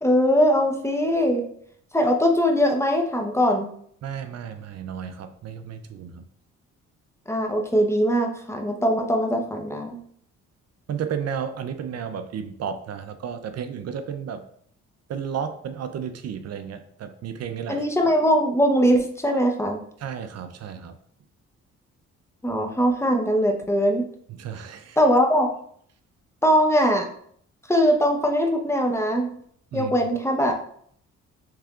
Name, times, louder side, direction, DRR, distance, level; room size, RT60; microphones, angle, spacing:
voice 1, 0.0-1.5 1.9-3.7 7.3-10.0 17.7-19.8 22.4-24.1 25.0-25.5 26.4-27.1 27.7-29.3 29.7-30.6, equal, 10° left, 3 dB, 0.8 m, -21 dB
voice 2, 4.0-6.2 10.9-14.4 15.1-17.8 20.0-21.0 24.3-25.0 29.7-29.9, right 7 dB, 55° right, 9 dB, 0.5 m, -33 dB
6.5 x 3.4 x 2.4 m, 0.63 s
cardioid pair, 90°, 30 cm